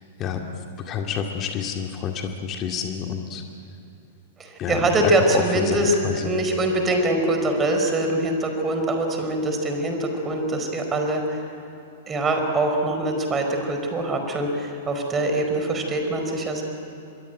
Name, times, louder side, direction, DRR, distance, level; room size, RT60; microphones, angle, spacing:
voice 1, 0.9-3.4 4.6-5.1 5.5-6.3, left 7 dB, 30° left, 3 dB, 2.2 m, -28 dB
voice 2, 4.4-11.4 12.1-16.6, right 1 dB, 20° right, 4 dB, 4.9 m, -23 dB
26.5 x 22.0 x 9.3 m, 2.7 s
figure-of-eight pair, 100°, 0 cm